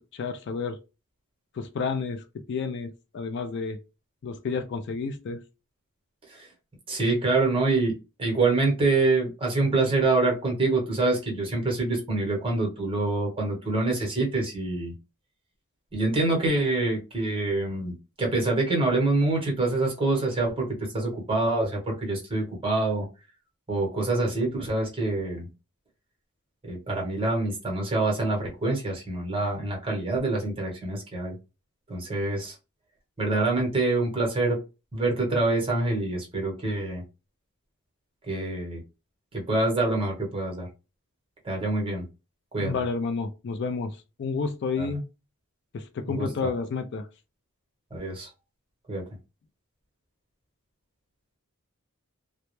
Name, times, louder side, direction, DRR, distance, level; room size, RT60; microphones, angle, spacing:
voice 1, 0.1-0.8 1.5-3.8 4.2-5.4 42.6-43.9 44.2-45.0 45.7-47.1, left 4 dB, 50° left, 0.3 m, -30 dB
voice 2, 6.9-7.9 8.2-14.9 15.9-23.1 23.7-25.5 26.6-31.4 31.9-32.5 33.2-34.6 34.9-37.0 38.3-38.8 39.3-40.7 41.4-42.0 42.5-42.7 44.8-44.9 46.1-46.3 47.9-48.3 48.9-49.0, right 2 dB, 25° right, 0.9 m, -26 dB
2.2 x 2.0 x 2.9 m
head